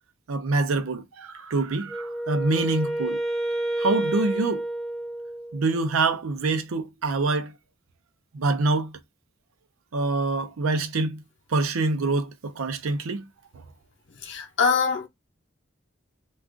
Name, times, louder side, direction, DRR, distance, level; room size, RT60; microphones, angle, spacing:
voice 1, 0.3-3.2 3.8-4.6 5.5-7.5 8.3-8.9 9.9-11.2 11.5-13.2, right 3 dB, 85° right, 0.5 m, -25 dB
Wind instrument woodwind instrument, 1.9-5.8, right 1 dB, ahead, 0.3 m, -29 dB
voice 2, 14.2-15.1, left 5 dB, 60° left, 0.6 m, -23 dB
2.4 x 2.3 x 3.7 m
head